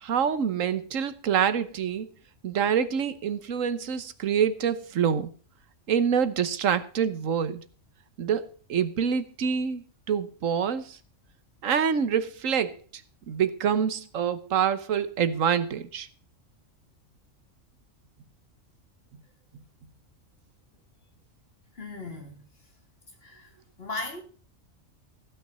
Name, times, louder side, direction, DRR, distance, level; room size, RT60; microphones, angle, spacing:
voice 1, 0.0-2.1 2.4-5.3 5.9-7.6 8.2-11.0 11.6-12.8 13.3-16.1, right 7 dB, 80° right, 1.4 m, -26 dB
voice 2, 21.7-22.4 23.2-23.5 23.8-24.2, left 2 dB, 50° left, 3.2 m, -37 dB
15.5 x 6.0 x 6.8 m
omnidirectional pair, 1.3 m